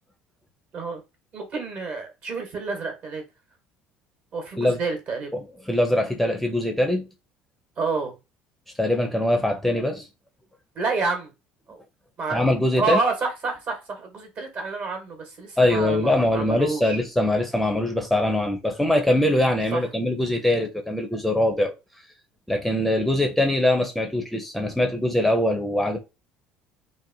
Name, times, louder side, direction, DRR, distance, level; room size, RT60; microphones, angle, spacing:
voice 1, 1.3-3.2 4.3-5.3 7.8-8.1 10.7-11.3 11.7-11.8 12.2-12.4 12.8-17.0 19.7-19.8, right 4 dB, 50° right, 1.1 m, -28 dB
voice 2, 5.3-7.1 8.8-10.1 12.3-13.0 15.6-21.7 22.5-26.0, left 1 dB, 5° left, 0.5 m, -22 dB
2.8 x 2.1 x 2.6 m
supercardioid pair, 95°, 3 cm